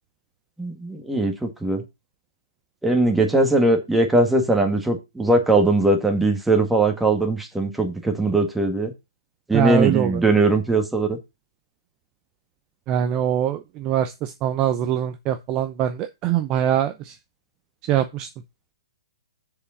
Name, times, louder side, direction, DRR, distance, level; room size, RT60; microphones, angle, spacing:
voice 1, 0.6-1.8 2.8-8.9 9.5-11.2, right 2 dB, 5° right, 4 dB, 1.7 m, -20 dB
voice 2, 9.5-10.1 12.9-16.9 17.9-18.3, right 10 dB, 25° right, 9 dB, 0.7 m, -22 dB
6.8 x 4.9 x 6.3 m, 0.24 s
hypercardioid pair, 145°, 3 cm